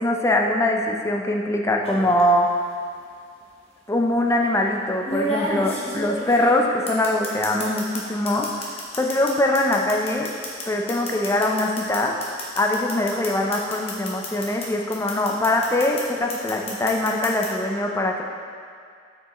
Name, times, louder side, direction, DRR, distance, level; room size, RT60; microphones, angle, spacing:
voice 1, 0.0-2.5 3.9-8.5 8.9-10.3 10.7-18.2, left 1 dB, 15° left, 1 dB, 0.4 m, -22 dB
sound 1, 1.8-2.2 3.4-3.5 5.0-8.0 8.3-14.7 14.9-16.0 16.3-17.5, left 1 dB, 35° left, 0.9 m, -30 dB
7.5 x 4.5 x 3.0 m, 2.2 s
head